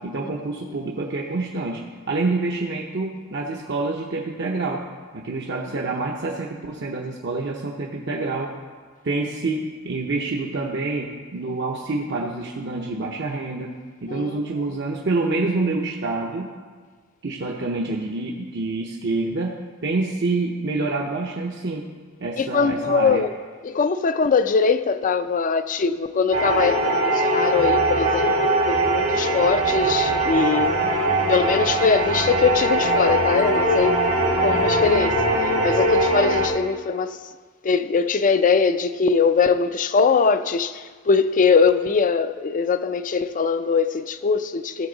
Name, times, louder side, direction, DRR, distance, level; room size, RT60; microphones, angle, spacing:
voice 1, 0.0-4.8 5.1-8.5 9.0-13.7 14.0-16.5 17.2-19.6 19.8-21.9 22.2-23.2, right 3 dB, 55° right, 0.8 m, -27 dB
voice 2, 14.1-14.7 22.4-23.3 23.6-30.8 31.3-33.9 34.4-35.3 35.6-37.2 37.6-44.9, left 5 dB, 40° left, 0.4 m, -21 dB
sound 1, 26.3-36.5, right 1 dB, 90° right, 1.8 m, -21 dB
sound 2, 29.6-35.9, left 1 dB, 85° left, 1.2 m, -36 dB
15.5 x 7.0 x 3.9 m
head